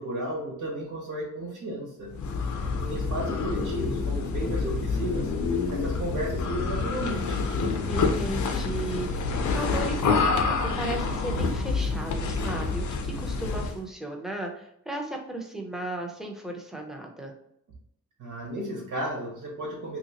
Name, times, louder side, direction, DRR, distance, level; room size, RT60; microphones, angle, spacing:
voice 1, 0.0-2.1 2.8-5.3 5.7-7.4 18.2-20.0, right 1 dB, 85° right, -3 dB, 1.2 m, -34 dB
sound 1, 2.1-13.8, left 4 dB, 65° left, 0.5 m, -27 dB
voice 2, 7.9-17.3, right 2 dB, ahead, 1 dB, 0.5 m, -35 dB
3.1 x 2.8 x 2.8 m, 0.75 s
wide cardioid pair, 155°, 32 cm